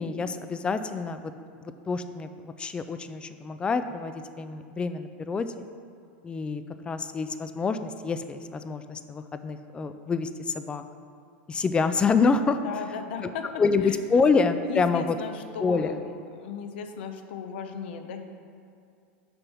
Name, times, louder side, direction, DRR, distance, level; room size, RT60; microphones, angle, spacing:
voice 1, 0.0-1.3 1.9-5.7 6.2-10.8 11.5-12.6 13.6-15.2 15.6-16.0, left 4 dB, 15° left, 10 dB, 0.4 m, -27 dB
voice 2, 12.6-14.0 14.6-18.2, left 6 dB, 70° left, 6 dB, 0.8 m, -36 dB
6.8 x 5.4 x 6.2 m, 2.4 s
supercardioid pair, 125°, 6 cm